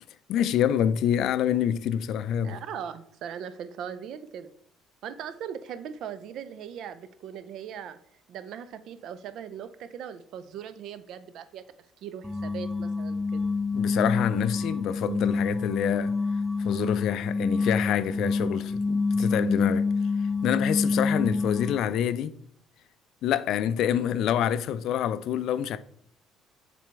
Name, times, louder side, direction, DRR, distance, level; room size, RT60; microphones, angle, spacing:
voice 1, 0.3-2.6 13.7-16.1 16.6-19.9 20.4-22.4 23.2-25.8, left 10 dB, 65° left, 0.4 m, -26 dB
voice 2, 2.4-4.5 5.0-8.0 8.3-11.6 12.0-13.5, right 8 dB, 65° right, 0.5 m, -39 dB
sound 1, 12.2-21.9, left 4 dB, 5° left, 0.6 m, -27 dB
7.3 x 4.2 x 3.4 m
hypercardioid pair, 55°, 0 cm